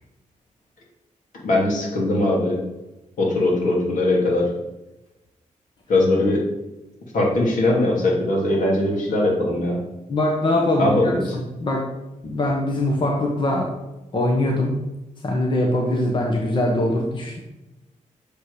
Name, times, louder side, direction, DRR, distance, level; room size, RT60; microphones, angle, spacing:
voice 1, 1.4-2.6 3.2-4.5 5.9-6.4 7.1-9.8 10.8-11.4, left 1 dB, 75° left, -3 dB, 2.8 m, -20 dB
voice 2, 10.1-11.8 12.2-13.7 14.1-14.8 15.2-17.4, left 1 dB, 35° left, 0 dB, 1.3 m, -22 dB
6.8 x 5.4 x 6.3 m, 1.0 s
wide cardioid pair, 140°, 13 cm